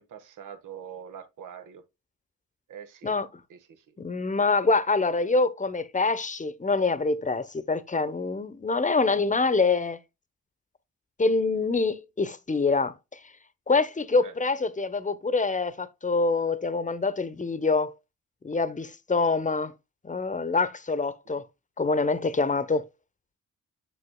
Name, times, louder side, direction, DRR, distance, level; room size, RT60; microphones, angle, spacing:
voice 1, 0.0-1.8 2.7-3.1 3.5-4.0 4.2-4.5 14.2-14.3 21.2-21.4, right 8 dB, 70° right, 1.3 m, -44 dB
voice 2, 4.0-10.0 11.2-12.9 13.7-17.9 18.4-19.7 20.0-21.4 21.8-22.8, left 3 dB, 25° left, 0.9 m, -25 dB
6.8 x 6.7 x 2.2 m
hypercardioid pair, 45°, 33 cm